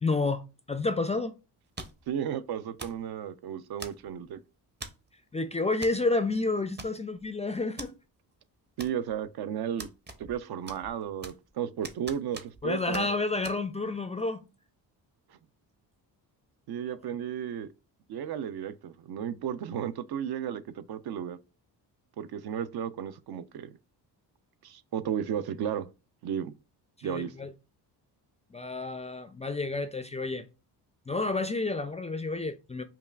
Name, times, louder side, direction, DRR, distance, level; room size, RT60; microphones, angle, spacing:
voice 1, 0.0-1.3 5.3-7.9 12.6-14.5 27.0-27.5 28.5-30.5 31.1-32.8, left 3 dB, 15° left, 0.3 m, -30 dB
sound 1, 1.8-2.1 2.8-3.1 3.8-4.2 4.8-5.1 5.8-6.0 6.3-6.4 6.8-7.3 7.8-7.9 8.8-9.3 9.8-10.4 10.7-11.5 11.8-12.7 12.9-13.1 13.4-13.6, right 3 dB, 25° right, 0.7 m, -43 dB
voice 2, 2.1-4.4 8.8-9.9 10.2-13.1 16.7-17.7 18.1-21.4 22.2-23.8 24.6-25.9 26.2-26.5 27.0-27.3, right 9 dB, 65° right, 0.5 m, -34 dB
5.4 x 2.3 x 2.3 m
cardioid pair, 90°, 42 cm